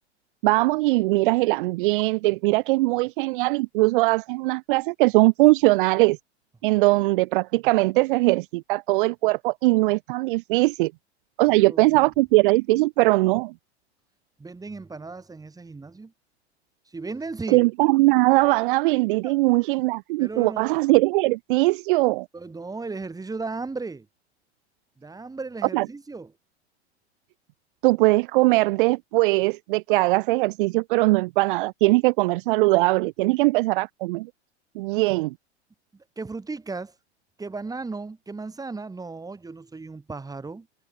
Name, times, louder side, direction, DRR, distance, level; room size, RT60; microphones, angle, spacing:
voice 1, 0.4-6.2 6.6-10.9 11.4-13.5 17.5-22.3 25.7-25.9 27.8-34.3 34.7-35.3, right 22 dB, 50° right, 0.9 m, -20 dB
voice 2, 11.5-11.9 14.4-16.1 16.9-17.6 19.2-19.4 20.2-20.6 22.3-24.1 25.0-26.3 35.9-36.9 37.4-40.7, right 3 dB, 10° right, 3.2 m, -35 dB
figure-of-eight pair, 85°, 34 cm